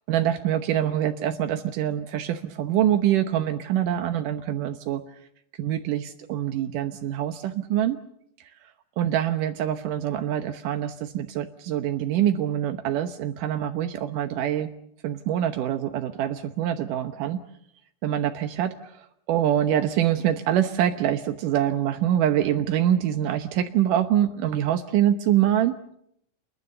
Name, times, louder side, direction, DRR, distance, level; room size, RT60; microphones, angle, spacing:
voice 1, 0.1-5.0 5.6-8.0 8.4-8.5 9.0-14.7 15.0-17.4 18.0-25.7, right 11 dB, 75° right, 7 dB, 1.9 m, -25 dB
29.0 x 22.0 x 6.8 m, 0.75 s
omnidirectional pair, 5.2 m